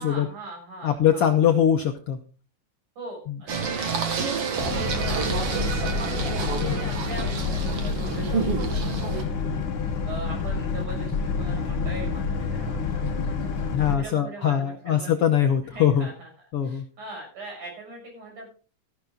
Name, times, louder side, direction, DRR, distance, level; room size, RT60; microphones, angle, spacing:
voice 1, 0.0-1.6 3.0-5.8 6.3-9.6 10.0-15.2 15.6-16.3 16.6-18.5, right 2 dB, 65° right, 0 dB, 8.4 m, -41 dB
voice 2, 0.8-2.2 3.3-3.4 6.6-7.0 13.7-16.1 16.5-16.8, left 9 dB, 70° left, 5 dB, 1.4 m, -22 dB
Singing, 3.5-9.2, right 5 dB, 50° right, 2.4 m, -29 dB
Boat Water vehicle, 4.6-14.0, left 5 dB, 50° left, 1.9 m, -28 dB
13.5 x 12.0 x 3.8 m, 0.37 s
omnidirectional pair, 3.7 m